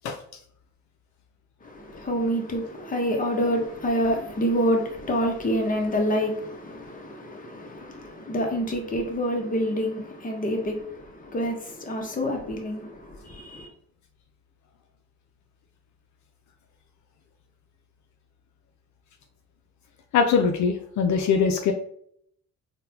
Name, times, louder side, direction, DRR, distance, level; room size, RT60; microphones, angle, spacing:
voice 1, 1.6-13.7, equal, 30° left, 0.8 m, -27 dB
voice 2, 20.1-21.7, left 6 dB, 70° left, 0.5 m, -22 dB
3.9 x 2.2 x 2.7 m
cardioid pair, 90°, 30 cm